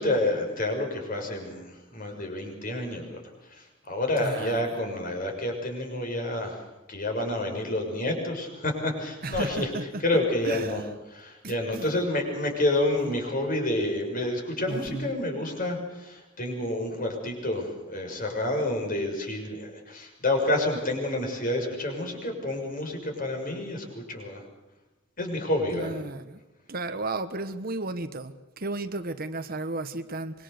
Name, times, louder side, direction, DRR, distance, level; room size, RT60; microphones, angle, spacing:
voice 1, 0.0-3.2 3.5-6.6 6.9-9.7 10.0-10.8 11.1-24.4 25.2-25.9, left 1 dB, 40° left, 6.4 m, -29 dB
voice 2, 4.2-4.6 9.2-10.9 11.4-12.0 13.0-13.1 14.7-15.1 25.7-26.4 26.7-30.4, right 2 dB, 45° right, 1.3 m, -34 dB
26.0 x 23.0 x 6.8 m
head